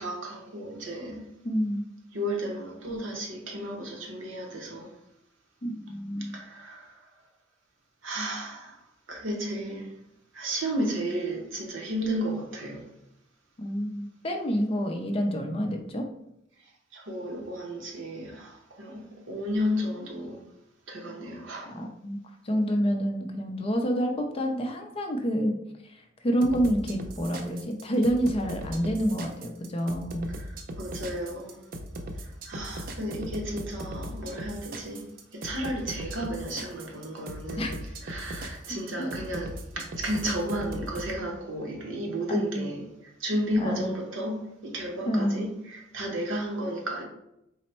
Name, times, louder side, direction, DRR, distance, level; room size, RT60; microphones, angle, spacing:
voice 1, 0.0-1.3 2.1-4.9 6.2-7.0 8.0-8.8 9.1-9.9 10.3-12.9 16.9-20.4 20.9-21.8 30.2-31.6 32.2-47.0, equal, 75° right, 0.9 m, -33 dB
voice 2, 1.4-1.8 5.6-6.4 13.6-16.0 21.7-22.2 22.4-25.5 25.9-30.2 37.6-37.7 39.0-39.1 42.3-42.7 43.6-43.9 45.1-45.4, equal, 30° left, 0.5 m, -28 dB
sound 1, 26.4-41.1, right 1 dB, 50° right, 0.4 m, -38 dB
4.1 x 2.1 x 4.2 m
head